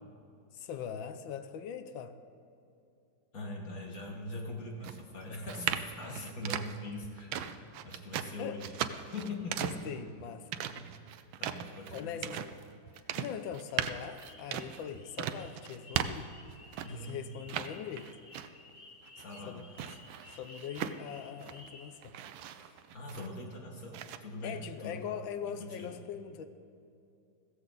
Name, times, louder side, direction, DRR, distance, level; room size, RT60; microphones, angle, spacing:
voice 1, 0.5-2.1 6.1-6.3 8.4-8.6 9.0-9.1 9.6-10.5 11.9-12.5 13.2-16.3 16.9-18.1 19.5-19.7 19.9-22.2 22.5-22.8 24.4-26.4, left 8 dB, 80° left, 10 dB, 1.5 m, -41 dB
voice 2, 3.3-7.5 7.8-8.8 9.1-9.7 10.8-10.9 11.4-12.3 13.2-13.3 16.8-17.3 19.2-19.6 22.9-25.0 25.5-25.9, left 1 dB, 50° left, 0 dB, 2.0 m, -42 dB
sound 1, 4.8-17.1 17.5-18.7 19.1-21.7 22.0-23.5 23.9-24.2, right 10 dB, 85° right, 1.4 m, -38 dB
sound 2, 14.0-22.0, left 2 dB, 30° left, 1.1 m, -56 dB
15.5 x 14.5 x 3.9 m, 2.7 s
omnidirectional pair, 2.1 m